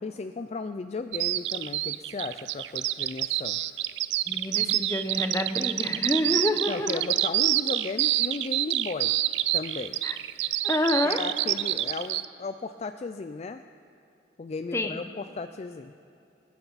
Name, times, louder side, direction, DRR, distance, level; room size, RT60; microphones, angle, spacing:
voice 1, 0.0-3.6 6.7-9.2 9.5-10.0 11.0-13.6 14.4-15.9, left 4 dB, 35° left, 9 dB, 0.4 m, -35 dB
Bird vocalization bird call bird song, 1.1-12.3, right 15 dB, 75° right, 0.4 m, -27 dB
voice 2, 4.3-7.1 10.0-10.2 10.6-11.2 14.7-15.0, left 1 dB, 15° left, 6 dB, 0.9 m, -28 dB
26.5 x 10.5 x 4.1 m, 2.8 s
head